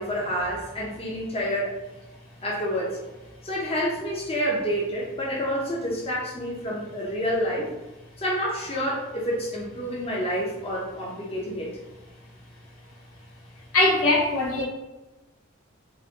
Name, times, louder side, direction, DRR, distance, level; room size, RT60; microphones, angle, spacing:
voice 1, 0.0-1.7 2.4-3.0 3.4-7.7 8.2-11.7, equal, 30° left, -4 dB, 0.9 m, -28 dB
voice 2, 13.7-14.6, left 2 dB, 85° left, -3 dB, 1.3 m, -21 dB
4.0 x 2.8 x 4.0 m, 1.1 s
head